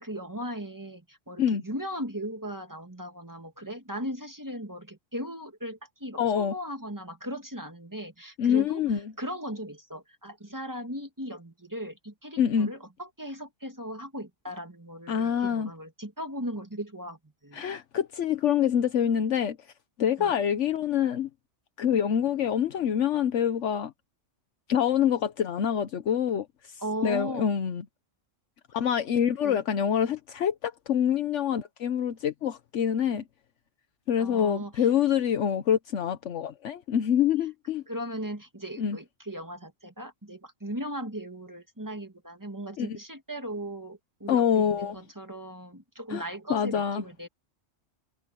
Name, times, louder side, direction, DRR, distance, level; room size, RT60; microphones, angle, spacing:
voice 1, 0.0-8.8 9.2-17.7 20.2-20.3 26.8-27.5 29.4-29.6 34.2-34.9 37.9-47.3, equal, 15° right, 2.1 m, -38 dB
voice 2, 6.2-6.5 8.4-9.0 12.4-12.7 15.1-15.7 17.5-19.6 20.0-21.3 21.8-23.9 24.7-27.8 28.7-33.2 34.1-37.8 38.8-39.0 42.8-43.0 44.3-45.0 46.1-46.2 46.5-47.0, left 8 dB, 75° left, 1.2 m, -26 dB
omnidirectional pair, 1.3 m